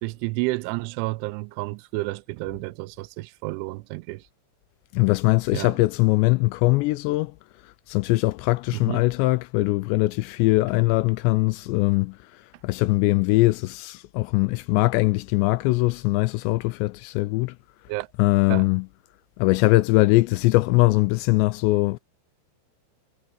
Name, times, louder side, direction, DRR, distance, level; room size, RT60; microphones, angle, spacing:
voice 1, 0.0-4.2 5.5-5.8 8.7-9.1 17.9-18.1 18.5-18.7, right 22 dB, 85° right, 3.0 m, -30 dB
voice 2, 4.9-7.3 7.9-12.2 12.6-17.5 18.2-18.9 19.4-22.0, left 21 dB, 85° left, 2.6 m, -21 dB
omnidirectional pair, 5.4 m